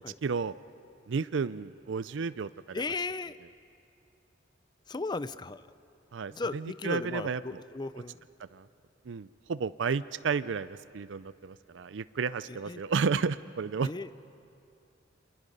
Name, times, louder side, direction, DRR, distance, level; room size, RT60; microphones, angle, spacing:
voice 1, 0.2-0.5 1.1-2.8 6.1-7.6 8.5-8.7 9.1-13.9, right 5 dB, 75° right, 15 dB, 0.5 m, -32 dB
voice 2, 2.7-3.4 4.9-5.6 6.3-8.2 12.7-12.8 13.8-14.1, left 3 dB, 25° left, 15 dB, 0.5 m, -35 dB
28.0 x 27.0 x 5.4 m, 2.5 s
head